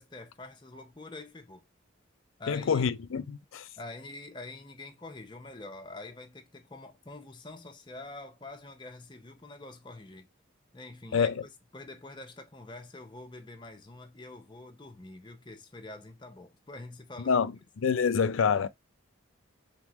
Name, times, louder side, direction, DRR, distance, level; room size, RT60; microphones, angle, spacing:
voice 1, 0.0-1.6 2.4-2.9 3.8-10.3 10.7-17.4, left 2 dB, 25° left, 0.7 m, -46 dB
voice 2, 2.5-3.7 11.1-11.3 17.3-17.5 17.8-18.7, left 6 dB, 85° left, 0.4 m, -26 dB
3.7 x 3.6 x 2.9 m
head